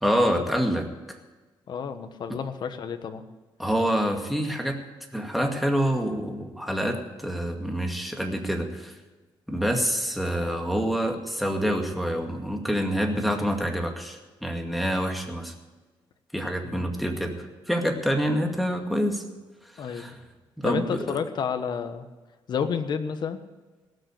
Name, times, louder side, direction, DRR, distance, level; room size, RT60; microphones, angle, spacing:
voice 1, 0.0-0.9 3.6-4.8 5.1-8.9 9.5-15.5 16.3-17.3 17.7-19.2 19.8-20.2 20.6-21.2, equal, ahead, 2 dB, 2.2 m, -26 dB
voice 2, 1.7-3.2 16.6-16.8 19.8-20.1 20.6-22.0 22.5-23.4, left 6 dB, 60° left, 9 dB, 1.3 m, -30 dB
18.0 x 6.6 x 8.4 m, 1.2 s
cardioid pair, 100°, 9 cm